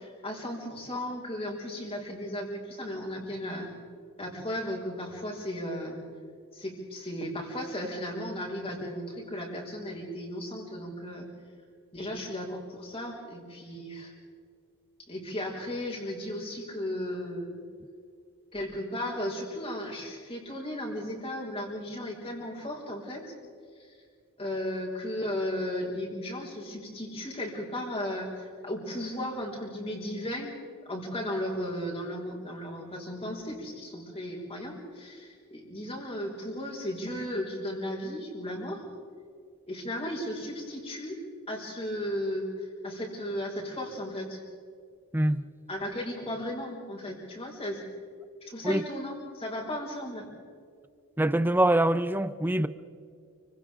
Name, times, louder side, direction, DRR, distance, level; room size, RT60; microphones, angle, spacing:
voice 1, 0.0-3.7 4.2-6.0 6.5-11.3 11.9-14.1 15.1-17.6 18.5-23.2 23.8-24.0 24.4-30.5 30.9-38.8 39.7-41.2 41.5-44.4 45.7-47.8 48.4-50.3, left 1 dB, 25° left, 5.6 m, -35 dB
voice 2, 51.2-52.7, right 1 dB, 10° right, 0.6 m, -24 dB
30.0 x 26.0 x 3.8 m
head